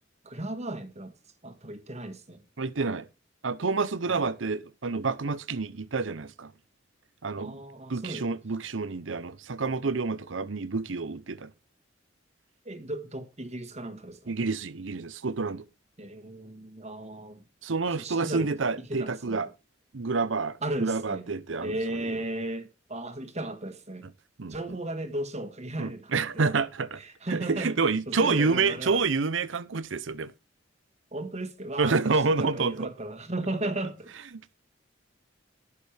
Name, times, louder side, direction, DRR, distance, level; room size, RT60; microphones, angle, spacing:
voice 1, 0.2-1.1 1.4-2.4 4.0-4.3 7.4-8.3 12.6-14.3 16.0-17.4 17.9-18.5 18.9-19.5 20.6-21.2 21.6-24.0 24.5-26.5 27.0-27.7 28.1-29.0 31.1-34.1, right 1 dB, 35° right, 1.6 m, -35 dB
voice 2, 2.6-3.1 3.4-6.5 7.2-7.6 7.9-11.5 14.3-15.6 17.6-19.5 19.9-21.8 24.4-24.6 25.8-27.0 27.3-30.3 31.8-32.9, right 4 dB, 80° right, 0.8 m, -28 dB
19.5 x 6.7 x 3.4 m
head